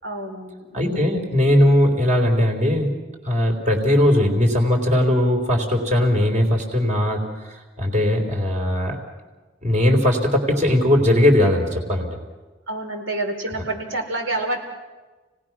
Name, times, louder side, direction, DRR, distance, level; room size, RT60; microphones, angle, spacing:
voice 1, 0.0-1.2 12.7-14.6, right 2 dB, 75° right, 1 dB, 4.6 m, -28 dB
voice 2, 0.7-2.9 3.2-9.0 9.6-12.1, left 1 dB, 40° right, 2 dB, 4.0 m, -19 dB
30.0 x 19.0 x 6.2 m, 1.3 s
head